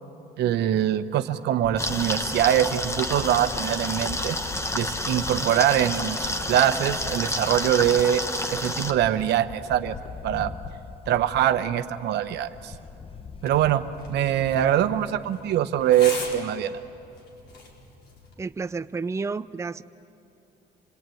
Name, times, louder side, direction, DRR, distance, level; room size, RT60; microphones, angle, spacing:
voice 1, 0.4-4.4 4.7-8.2 8.5-9.9 10.2-10.5 11.1-12.7 13.4-13.8 14.1-16.7, right 11 dB, 85° right, 10 dB, 1.0 m, -23 dB
Camera, 1.6-16.4, left 6 dB, 35° left, 0.9 m, -42 dB
sound 1, 1.8-8.9, left 1 dB, 15° left, 1.4 m, -29 dB
sound 2, 13.3-18.3, left 3 dB, 70° left, 4.5 m, -41 dB
voice 2, 18.4-19.8, right 4 dB, 15° right, 12 dB, 0.5 m, -31 dB
26.5 x 20.0 x 9.2 m, 2.9 s
cardioid pair, 100°, 17 cm